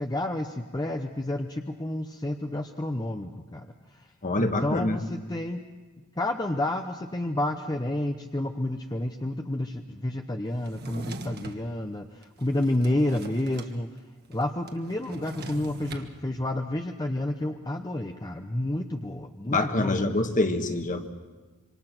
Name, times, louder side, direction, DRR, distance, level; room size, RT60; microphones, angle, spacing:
voice 1, 0.0-3.7 3.9-4.1 4.4-5.6 6.2-13.9 14.3-20.3, left 1 dB, 20° left, 4 dB, 0.8 m, -30 dB
voice 2, 4.2-5.0 19.5-21.1, left 2 dB, 35° left, 6 dB, 1.6 m, -26 dB
Drawer open or close, 10.6-11.6 12.2-13.7 14.0-14.1 14.3-16.1, right 2 dB, 45° right, 1.6 m, -40 dB
26.5 x 25.0 x 6.0 m, 1.3 s
head